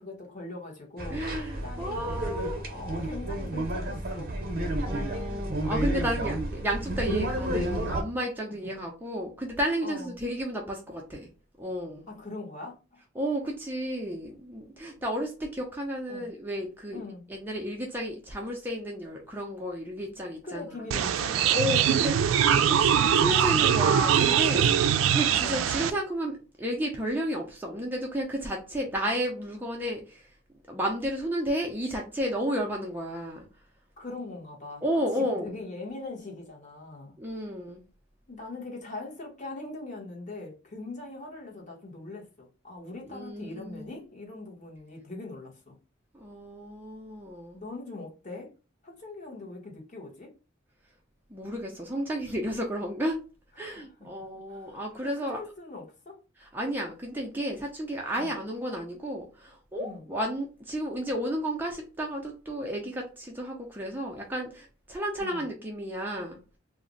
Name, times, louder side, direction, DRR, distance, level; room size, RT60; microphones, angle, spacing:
voice 1, 0.0-1.3 1.6-4.4 7.2-7.3 9.8-10.1 12.1-13.0 16.1-16.3 16.9-17.3 20.4-21.9 24.3-24.7 25.4-25.7 34.0-34.8 35.2-37.2 38.3-45.7 47.5-48.5 48.8-50.3 53.6-56.2 58.1-58.3 59.8-60.1 65.2-65.5, left 2 dB, 40° left, -2 dB, 0.9 m, -41 dB
sound 1, 1.0-8.0, right 1 dB, 50° right, 0.7 m, -31 dB
voice 2, 1.1-2.6 4.8-11.3 11.6-12.1 13.2-17.0 17.3-20.8 21.5-30.3 30.7-33.5 34.8-35.5 37.2-37.8 43.1-43.9 46.1-47.6 51.3-53.2 53.6-55.4 56.4-66.4, equal, 10° right, -1 dB, 0.4 m, -32 dB
sound 2, 20.9-25.9, right 9 dB, 85° right, 0.3 m, -22 dB
2.4 x 2.0 x 3.7 m, 0.33 s
head